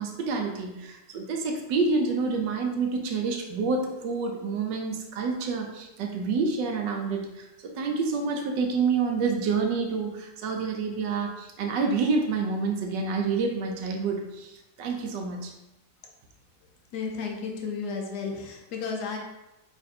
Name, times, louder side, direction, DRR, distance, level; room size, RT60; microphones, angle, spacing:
voice 1, 0.0-15.5, right 4 dB, 85° right, 3 dB, 1.3 m, -28 dB
voice 2, 16.9-19.2, left 5 dB, 75° left, 1 dB, 1.2 m, -33 dB
3.9 x 2.6 x 4.1 m, 0.97 s
omnidirectional pair, 1.9 m